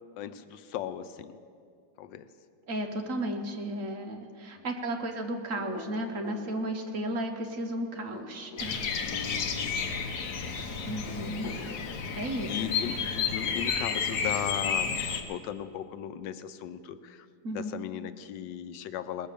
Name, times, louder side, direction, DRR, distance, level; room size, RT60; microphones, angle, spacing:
voice 1, 0.2-1.3 2.0-2.3 4.6-4.7 9.0-10.6 12.4-15.0 15.3-19.3, left 9 dB, 90° left, 12 dB, 1.3 m, -38 dB
voice 2, 2.7-8.9 10.8-11.5 12.2-12.5 17.4-17.8, right 1 dB, 50° right, 4 dB, 1.2 m, -34 dB
sound 1, 5.5-6.5 7.9-8.7 10.9-11.7, left 2 dB, 10° right, 2.9 m, -44 dB
Bird vocalization bird call bird song, 8.6-15.2, left 6 dB, 65° left, 1.5 m, -31 dB
19.5 x 7.6 x 6.8 m, 2.3 s
omnidirectional pair, 2.0 m